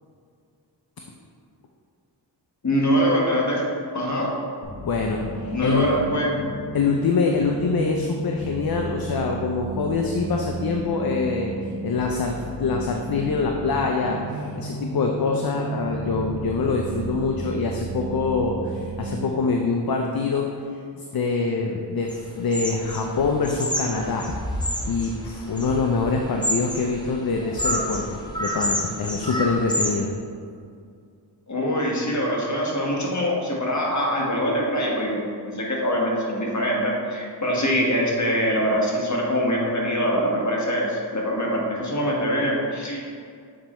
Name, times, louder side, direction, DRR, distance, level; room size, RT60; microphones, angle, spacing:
voice 1, 2.6-3.6 3.9-4.3 5.5-6.4 31.5-43.1, equal, 40° left, -3 dB, 1.3 m, -23 dB
sound 1, 4.6-19.3, right 2 dB, 65° right, 1.4 m, -33 dB
voice 2, 4.8-5.9 6.7-20.5 20.7-20.8 21.1-24.3 24.9-30.1, left 4 dB, 55° left, 2 dB, 0.5 m, -25 dB
sound 2, 22.1-22.2 22.5-29.9, equal, 10° left, 0.7 m, -29 dB
7.4 x 4.3 x 3.0 m, 2.2 s
wide cardioid pair, 65°, 44 cm